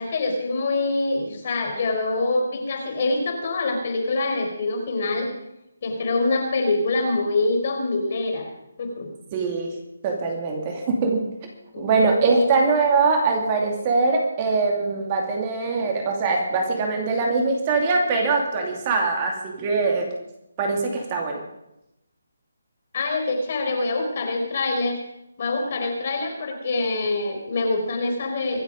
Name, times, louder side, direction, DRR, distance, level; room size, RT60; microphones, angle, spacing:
voice 1, 0.0-5.3 5.8-8.5 8.8-9.1 11.7-11.8 12.2-12.5 22.9-25.0 25.4-28.6, left 3 dB, 45° left, 3 dB, 4.4 m, -25 dB
voice 2, 9.3-9.8 10.0-11.3 11.8-20.1 20.6-21.4, right 4 dB, 25° right, 1 dB, 2.6 m, -22 dB
24.5 x 8.4 x 5.3 m, 0.86 s
hypercardioid pair, 165°, 0 cm